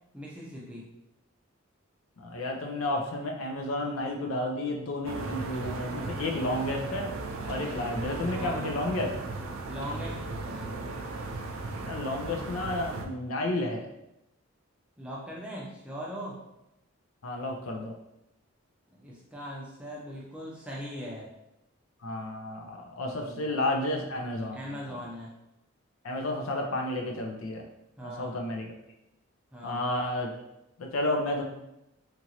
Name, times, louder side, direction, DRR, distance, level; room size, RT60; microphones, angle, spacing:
voice 1, 0.1-0.9 8.3-8.7 9.7-10.9 15.0-16.4 18.9-21.3 23.0-23.4 24.5-25.3 28.0-28.3 29.5-29.8, equal, 5° right, -5 dB, 0.5 m, -40 dB
voice 2, 2.2-7.1 7.5-9.1 11.8-13.9 17.2-17.9 22.0-25.0 26.0-27.6 28.0-28.7 29.6-30.3 30.8-31.4, left 1 dB, 80° left, 1 dB, 0.5 m, -31 dB
sound 1, 5.0-13.1, right 3 dB, 70° right, 0.4 m, -36 dB
2.9 x 2.5 x 2.8 m, 0.87 s
head